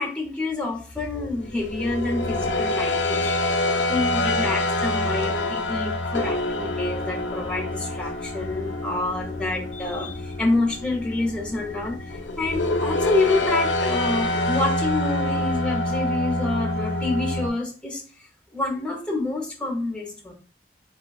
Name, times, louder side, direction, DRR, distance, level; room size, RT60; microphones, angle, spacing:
voice 1, 0.0-3.5 3.9-18.0 18.5-20.3, left 2 dB, 5° left, 0 dB, 0.6 m, -28 dB
sound 1, 1.1-17.5, left 2 dB, 90° left, 0.4 m, -26 dB
3.6 x 2.3 x 2.3 m, 0.38 s
head